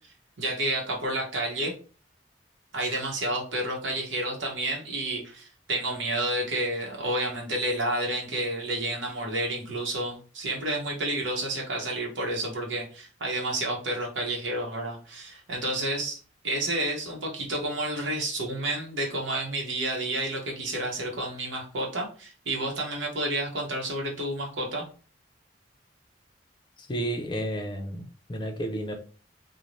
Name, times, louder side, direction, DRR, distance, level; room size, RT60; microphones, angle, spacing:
voice 1, 0.4-1.7 2.7-16.2 16.4-24.9, right 1 dB, 75° right, 0.9 m, -30 dB
voice 2, 26.8-28.9, right 1 dB, 25° left, 0.5 m, -32 dB
2.6 x 2.1 x 3.1 m
head